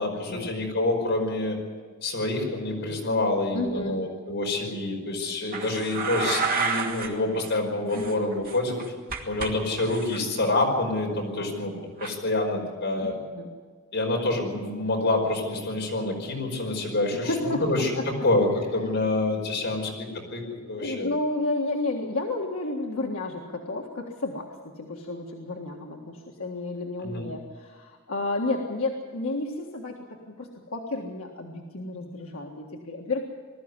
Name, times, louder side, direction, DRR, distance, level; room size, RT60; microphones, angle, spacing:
voice 1, 0.0-1.6 2.0-8.8 9.3-11.7 12.0-13.1 13.9-17.9 18.2-20.4 20.7-21.1 27.0-27.3, left 2 dB, 60° left, 0 dB, 5.3 m, -27 dB
voice 2, 3.5-4.0 7.9-8.3 11.3-11.6 13.0-13.5 17.2-18.1 18.8-18.9 19.7-19.9 20.6-30.0 30.4-33.2, left 2 dB, 90° left, 0 dB, 1.8 m, -32 dB
sound 1, 5.5-7.1 7.3-7.5 7.9-9.5 9.8-10.2 12.0-12.1, right 4 dB, 45° right, 2.5 m, -30 dB
20.5 x 13.5 x 9.8 m, 1.5 s
head